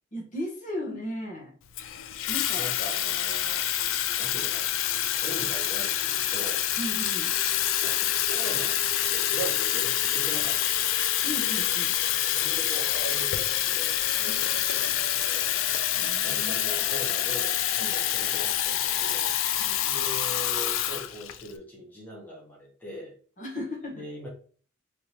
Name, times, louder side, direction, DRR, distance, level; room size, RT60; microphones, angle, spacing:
voice 1, 0.1-1.5 2.3-2.7 6.8-7.3 11.2-11.9 14.3-14.4 15.9-16.7 17.8-17.9 19.6-19.9 23.4-24.0, left 1 dB, 40° left, 0 dB, 0.9 m, -36 dB
Water tap faucet / Fill (with liquid), 1.8-21.5, left 11 dB, 75° left, 0.3 m, -27 dB
voice 2, 2.6-4.7 5.2-6.6 7.8-10.9 12.3-15.5 16.2-19.3 19.9-23.1 23.9-24.3, right 1 dB, 10° left, -4 dB, 1.0 m, -41 dB
3.5 x 2.8 x 3.0 m, 0.43 s
head